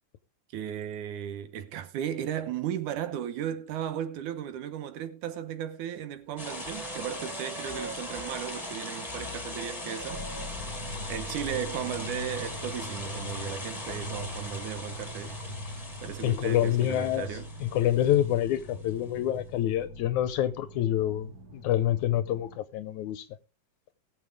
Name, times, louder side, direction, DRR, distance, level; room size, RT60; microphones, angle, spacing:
voice 1, 0.5-10.3 10.6-10.7 11.1-15.4 16.0-17.5, right 10 dB, 75° right, 2.3 m, -35 dB
sound 1, 6.2-14.3, right 4 dB, 60° right, 1.3 m, -47 dB
sound 2, 6.4-18.9, left 2 dB, 15° left, 1.2 m, -40 dB
sound 3, 10.1-22.6, equal, 40° right, 1.7 m, -42 dB
voice 2, 16.2-23.3, left 12 dB, 75° left, 2.0 m, -27 dB
19.0 x 7.3 x 3.5 m
omnidirectional pair, 3.8 m